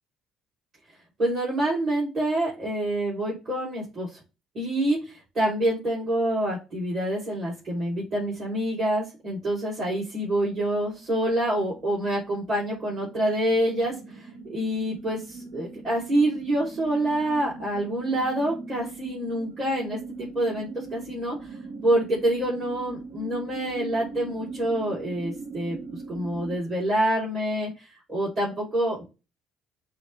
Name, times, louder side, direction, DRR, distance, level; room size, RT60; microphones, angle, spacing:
voice 1, 1.2-4.1 4.5-21.5 21.8-25.8 26.1-29.1, right 1 dB, 40° right, -5 dB, 2.6 m, -27 dB
sound 1, 10.2-10.5 10.9-26.6, right 4 dB, 85° right, 1.1 m, -41 dB
6.1 x 2.2 x 2.9 m, 0.28 s
hypercardioid pair, 60°, 0 cm